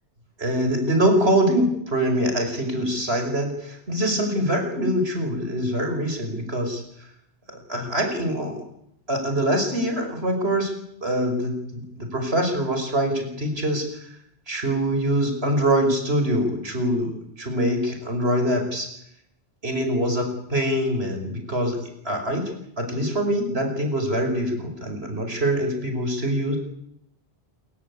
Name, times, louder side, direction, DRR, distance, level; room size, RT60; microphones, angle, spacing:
voice 1, 0.4-6.8 7.5-8.6 9.1-10.7 11.0-13.9 14.5-18.9 19.6-22.5 22.8-26.6, right 1 dB, 80° right, 5 dB, 5.8 m, -24 dB
27.0 x 16.0 x 9.8 m, 0.75 s
omnidirectional pair, 1.0 m